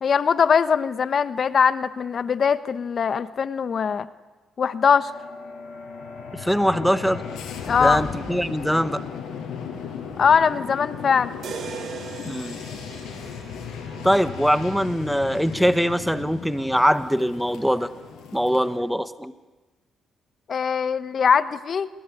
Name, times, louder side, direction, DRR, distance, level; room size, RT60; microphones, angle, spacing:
voice 1, 0.0-4.1 4.6-5.1 7.7-8.0 10.2-11.3 20.5-21.9, left 6 dB, 50° left, 14 dB, 1.0 m, -21 dB
sound 1, 5.0-18.8, left 6 dB, 80° left, 5.9 m, -36 dB
voice 2, 6.3-7.2 7.7-9.0 12.2-12.6 14.0-17.9 18.3-19.3, equal, ahead, 13 dB, 1.2 m, -22 dB
sound 2, 11.4-15.5, right 6 dB, 65° right, 3.1 m, -40 dB
27.5 x 20.5 x 10.0 m, 1.2 s
cardioid pair, 90°, 0 cm